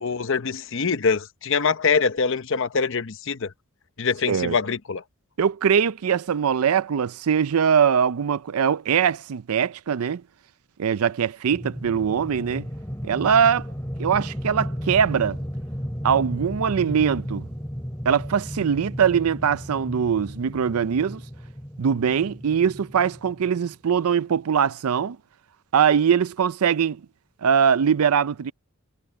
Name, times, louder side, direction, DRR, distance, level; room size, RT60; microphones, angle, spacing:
voice 1, 0.0-3.5 4.0-5.0, left 5 dB, 55° left, 0.8 m, -24 dB
voice 2, 5.4-10.2 10.8-12.7 13.0-13.6 14.0-15.4 16.0-17.5 18.1-21.2 21.8-25.2 25.7-27.0 27.4-28.5, right 7 dB, 75° right, 0.4 m, -22 dB
sound 1, 11.5-23.7, equal, 10° left, 2.7 m, -34 dB
head